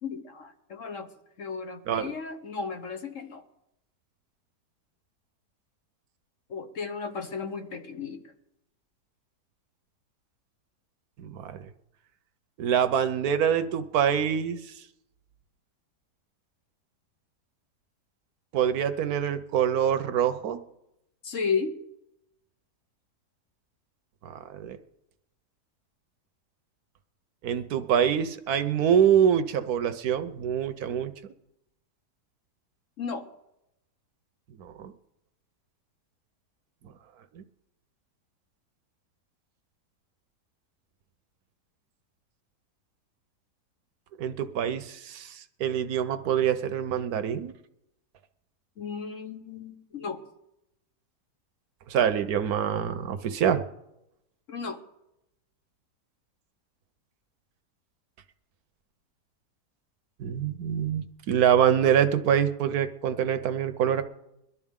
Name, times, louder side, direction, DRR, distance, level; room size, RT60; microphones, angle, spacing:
voice 1, 0.0-1.1 1.4-3.4 6.5-8.2 21.2-21.7 33.0-33.3 48.8-50.2 54.5-54.8, left 5 dB, 55° left, 6 dB, 1.3 m, -34 dB
voice 2, 11.2-11.7 12.6-14.6 18.5-20.6 24.2-24.8 27.4-31.1 34.6-34.9 37.3-37.4 44.2-47.5 51.9-53.6 60.2-64.0, right 9 dB, 70° right, 11 dB, 1.2 m, -25 dB
22.0 x 12.0 x 3.6 m, 0.87 s
omnidirectional pair, 1.7 m